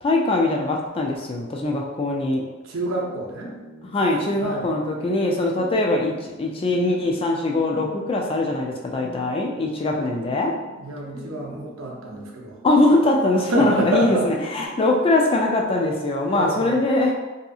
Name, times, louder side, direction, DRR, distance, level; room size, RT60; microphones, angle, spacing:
voice 1, 0.0-2.4 3.8-10.6 12.6-17.1, left 2 dB, 25° left, 0 dB, 0.3 m, -22 dB
voice 2, 2.6-3.5 4.4-4.7 10.8-12.6 13.5-14.3 16.2-16.8, right 2 dB, 85° right, -2 dB, 0.6 m, -27 dB
sound 1, 2.7-14.7, equal, 85° left, 0.8 m, -44 dB
2.7 x 2.5 x 2.3 m, 1.2 s
head